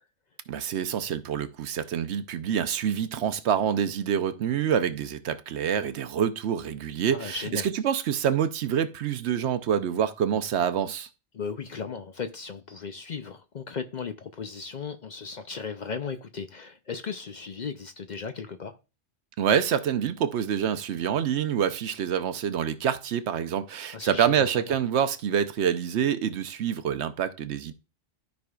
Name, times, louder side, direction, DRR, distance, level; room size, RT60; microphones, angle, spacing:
voice 1, 0.5-11.1 19.4-27.7, right 8 dB, 75° right, 0.9 m, -26 dB
voice 2, 7.1-7.7 11.3-18.8 23.9-24.8, left 5 dB, 50° left, 0.6 m, -36 dB
13.0 x 5.3 x 2.3 m
omnidirectional pair, 1.2 m